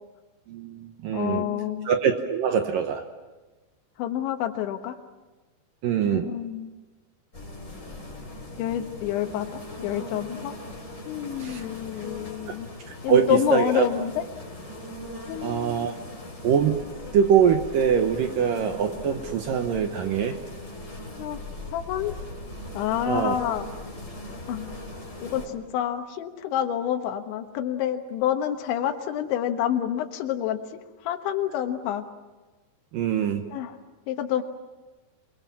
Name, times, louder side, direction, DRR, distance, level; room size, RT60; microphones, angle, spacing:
voice 1, 0.5-3.0 5.8-6.3 11.4-11.7 12.9-13.9 15.4-15.9 16.4-16.8 17.1-20.4 23.0-23.4 32.9-33.4, right 8 dB, 70° right, 6 dB, 2.2 m, -23 dB
voice 2, 1.1-1.9 4.0-5.0 6.1-6.7 8.6-10.6 11.1-12.7 13.0-14.2 15.3-15.9 21.2-21.4 21.7-22.1 22.7-23.7 24.5-24.7 25.2-32.1 33.5-33.8 34.1-34.4, left 10 dB, 85° left, 5 dB, 3.6 m, -28 dB
sound 1, 7.3-25.5, left 1 dB, 15° left, 4.5 m, -39 dB
28.5 x 21.5 x 7.5 m, 1.2 s
omnidirectional pair, 5.2 m